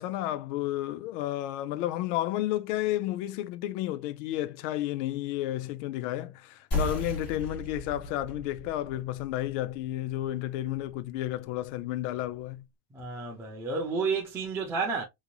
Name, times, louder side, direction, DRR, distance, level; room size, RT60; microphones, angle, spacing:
voice 1, 0.0-12.6, left 14 dB, 65° left, 0.5 m, -32 dB
sound 1, 6.7-11.8, left 1 dB, 25° left, 2.2 m, -37 dB
voice 2, 12.9-15.0, right 4 dB, 5° right, 0.3 m, -31 dB
3.9 x 3.1 x 2.3 m
cardioid pair, 170°, 38 cm